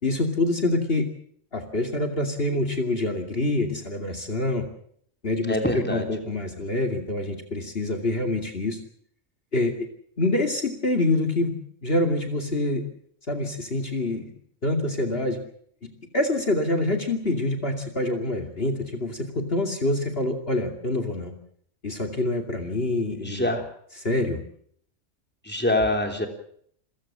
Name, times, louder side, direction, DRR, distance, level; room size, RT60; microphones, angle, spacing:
voice 1, 0.0-1.1 1.5-4.7 5.2-8.8 9.5-9.7 10.2-11.6 11.8-12.8 13.3-14.3 14.6-15.4 16.1-21.3 21.8-23.5 24.0-24.4, left 2 dB, 50° left, 5 dB, 2.8 m, -26 dB
voice 2, 5.5-6.1 23.2-23.6 25.4-26.3, left 1 dB, 10° left, 4 dB, 3.4 m, -24 dB
28.0 x 16.0 x 7.5 m, 0.63 s
omnidirectional pair, 1.3 m